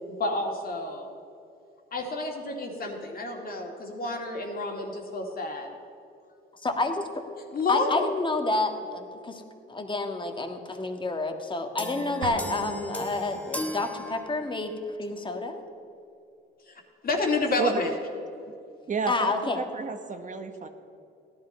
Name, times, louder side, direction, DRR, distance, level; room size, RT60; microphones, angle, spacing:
voice 1, 0.2-1.1 1.9-5.7 7.5-8.1 16.7-16.8 17.0-17.9, left 2 dB, 50° left, 2 dB, 2.5 m, -29 dB
voice 2, 6.6-7.0 7.7-9.4 9.7-15.6 19.1-19.6, left 2 dB, 25° left, 5 dB, 1.7 m, -29 dB
sound 1, 11.8-14.8, left 1 dB, 5° left, 1.1 m, -37 dB
sound 2, 12.2-14.0, right 5 dB, 80° right, 1.3 m, -39 dB
voice 3, 18.9-20.7, right 5 dB, 40° right, 7 dB, 1.1 m, -31 dB
15.5 x 11.0 x 5.4 m, 2.6 s
cardioid pair, 90°, 20 cm